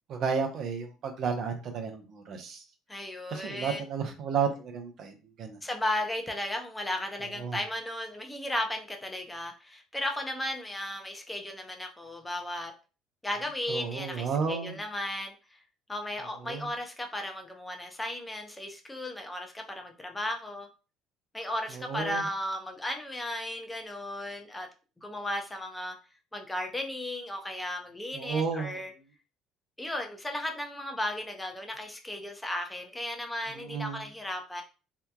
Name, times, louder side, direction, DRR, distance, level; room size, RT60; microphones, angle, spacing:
voice 1, 0.1-2.6 3.3-5.6 7.4-7.6 13.7-14.8 16.4-16.7 21.7-22.2 28.1-28.8 33.5-34.0, right 6 dB, 60° right, 5 dB, 0.5 m, -32 dB
voice 2, 2.9-3.8 5.6-12.7 13.2-15.3 15.9-20.7 21.3-24.7 25.0-25.9 26.3-28.9 29.8-34.6, left 1 dB, 10° left, 4 dB, 0.6 m, -35 dB
2.8 x 2.2 x 2.2 m, 0.33 s
supercardioid pair, 75°, 0 cm